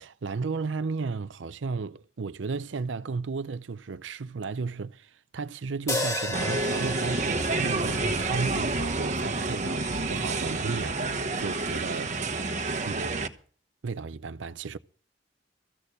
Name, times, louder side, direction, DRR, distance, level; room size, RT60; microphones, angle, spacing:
voice 1, 0.0-12.2 12.8-13.3 13.8-14.8, right 4 dB, 85° right, 0.5 m, -34 dB
sound 1, 5.9-10.2, left 2 dB, 15° left, 2.1 m, -35 dB
sound 2, 6.3-13.3, right 3 dB, 40° right, 1.2 m, -29 dB
14.5 x 6.6 x 8.4 m
head